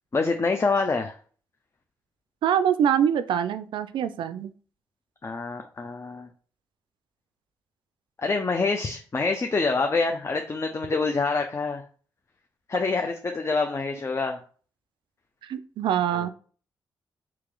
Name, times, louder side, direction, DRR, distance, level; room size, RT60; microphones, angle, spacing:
voice 1, 0.1-1.2 5.2-6.3 8.2-11.8 12.7-14.4 16.1-16.3, left 4 dB, 35° left, 4 dB, 0.5 m, -26 dB
voice 2, 2.4-4.5 15.4-16.3, right 9 dB, 75° right, 12 dB, 0.4 m, -24 dB
3.0 x 2.9 x 3.8 m, 0.41 s
supercardioid pair, 45°, 8 cm